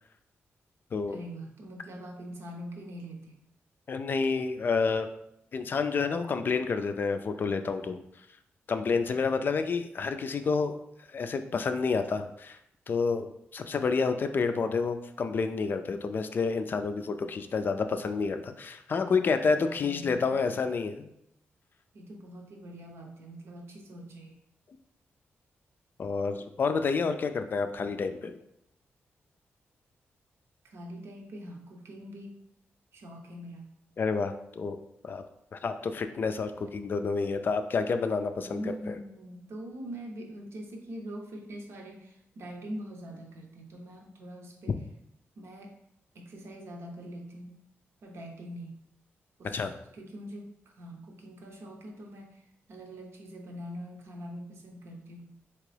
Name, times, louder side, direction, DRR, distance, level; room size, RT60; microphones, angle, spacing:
voice 1, 1.1-3.4 19.5-20.5 21.9-24.4 30.6-32.4 32.9-33.7 36.6-36.7 38.4-44.8 45.4-45.7 46.1-47.5 48.0-48.8 49.4-49.7 49.9-55.3, equal, 70° right, 2 dB, 0.7 m, -43 dB
voice 2, 3.9-5.1 5.5-8.0 8.7-10.8 11.1-12.6 12.9-21.1 26.0-28.4 34.0-34.8 35.0-35.2 35.5-39.0 49.5-49.7, left 4 dB, 50° left, 8 dB, 0.3 m, -29 dB
3.5 x 2.9 x 3.3 m, 0.77 s
cardioid pair, 95°, 5 cm